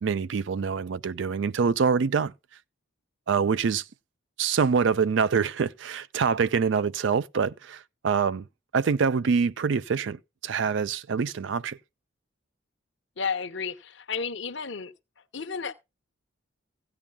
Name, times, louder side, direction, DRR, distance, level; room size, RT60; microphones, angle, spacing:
voice 1, 0.0-2.3 3.3-3.8 4.4-8.5 8.7-11.8, right 5 dB, 70° right, 0.4 m, -25 dB
voice 2, 13.2-14.9 15.3-15.7, left 5 dB, 65° left, 0.9 m, -32 dB
16.0 x 8.7 x 2.2 m
head